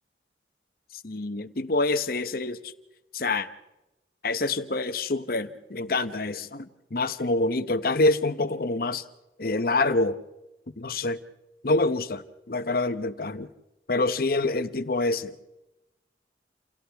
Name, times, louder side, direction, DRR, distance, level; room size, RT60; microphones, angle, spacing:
voice 1, 1.0-2.7 3.1-3.5 4.2-9.0 9.4-10.2 10.8-11.2 11.6-13.5 13.9-15.4, left 2 dB, 55° left, 0.9 m, -26 dB
29.0 x 28.5 x 3.5 m
head